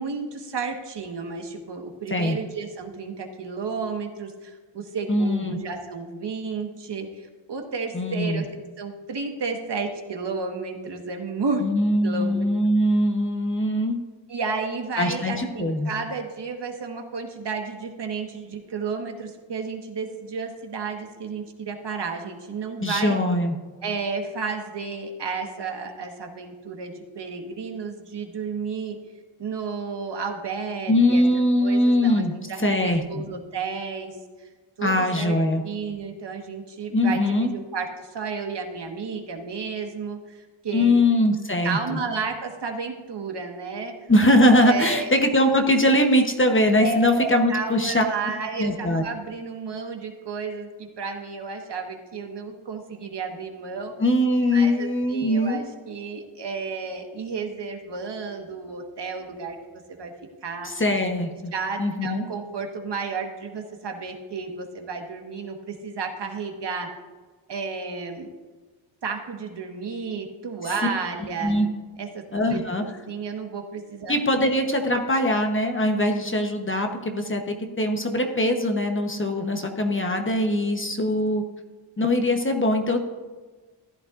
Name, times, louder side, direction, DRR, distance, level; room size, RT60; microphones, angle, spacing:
voice 1, 0.0-11.6 12.0-12.4 14.3-23.2 23.8-29.0 29.4-31.2 31.6-34.5 34.8-35.4 35.6-41.0 41.6-43.9 44.6-45.1 46.8-53.9 54.5-59.6 59.9-60.1 60.4-60.7 61.5-66.9 67.5-68.3 69.0-71.6 72.0-72.2 72.5-74.1, right 4 dB, 60° right, 3 dB, 1.5 m, -32 dB
voice 2, 5.1-5.6 7.9-8.4 11.6-14.0 15.0-15.9 22.8-23.6 30.9-32.3 32.6-33.2 34.8-35.6 36.9-37.5 40.7-42.0 44.1-48.0 48.6-49.0 54.0-55.6 60.6-61.5 61.8-62.3 71.4-71.7 72.3-72.8 74.1-81.4 82.0-83.0, left 1 dB, 25° left, 4 dB, 1.0 m, -22 dB
14.5 x 11.0 x 2.5 m, 1.4 s
wide cardioid pair, 130°, 48 cm